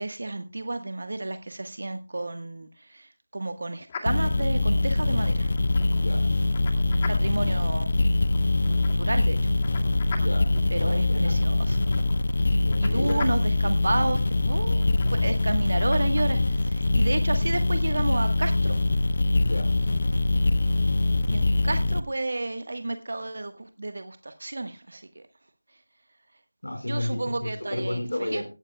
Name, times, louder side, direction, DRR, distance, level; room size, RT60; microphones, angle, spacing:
voice 1, 0.0-5.5 7.1-7.9 8.7-9.4 10.7-11.8 12.8-18.7 21.3-25.2 26.8-28.4, right 2 dB, 55° right, 8 dB, 1.3 m, -31 dB
sound 1, 3.9-16.2, left 5 dB, 20° left, 2.0 m, -44 dB
sound 2, 4.1-22.0, left 2 dB, 40° left, 0.9 m, -23 dB
voice 2, 5.9-6.3 10.1-11.4 12.6-13.2 19.4-19.7 26.6-28.5, left 1 dB, 80° left, 2 dB, 4.8 m, -32 dB
18.0 x 14.0 x 2.3 m, 0.30 s
figure-of-eight pair, 170°, 0 cm